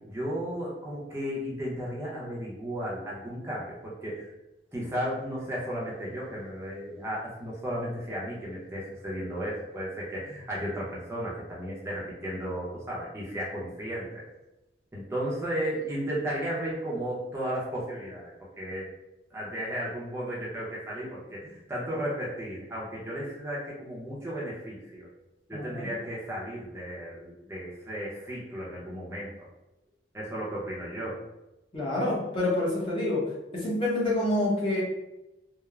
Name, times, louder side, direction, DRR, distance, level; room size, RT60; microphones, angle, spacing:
voice 1, 0.0-4.3 4.7-14.2 14.9-18.3 18.6-18.9 19.3-25.1 25.5-29.3 30.1-31.2, equal, 15° right, -7 dB, 0.6 m, -34 dB
voice 2, 25.5-25.9 31.7-33.2 33.5-34.8, left 1 dB, 30° left, -5 dB, 0.7 m, -27 dB
3.1 x 2.0 x 2.3 m, 0.94 s
head